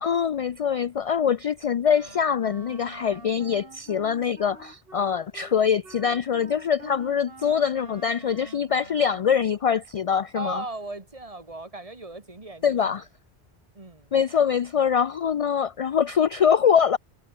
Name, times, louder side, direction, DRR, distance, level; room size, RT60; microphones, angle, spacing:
voice 1, 0.0-10.6 12.6-13.0 14.1-17.0, left 7 dB, 50° left, 0.4 m, -23 dB
Wind instrument woodwind instrument, 1.9-9.4, right 3 dB, 65° right, 2.8 m, -47 dB
voice 2, 10.3-12.9 13.7-14.1, right 2 dB, 35° right, 2.2 m, -37 dB
omnidirectional pair, 1.0 m